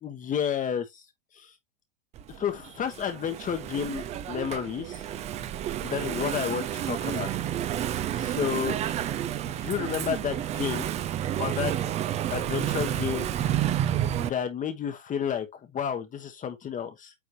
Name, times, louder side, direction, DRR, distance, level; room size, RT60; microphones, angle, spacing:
voice 1, 0.0-1.0 1.3-1.5 2.3-5.0 5.8-7.3 8.1-8.8 9.5-10.9 11.4-11.8 12.3-13.3 14.2-17.1, left 8 dB, 20° left, 1.1 m, -31 dB
Engine / Mechanisms, 2.1-14.3, right 11 dB, 15° right, 0.5 m, -30 dB
8.7 x 3.8 x 3.0 m
hypercardioid pair, 110°, 39 cm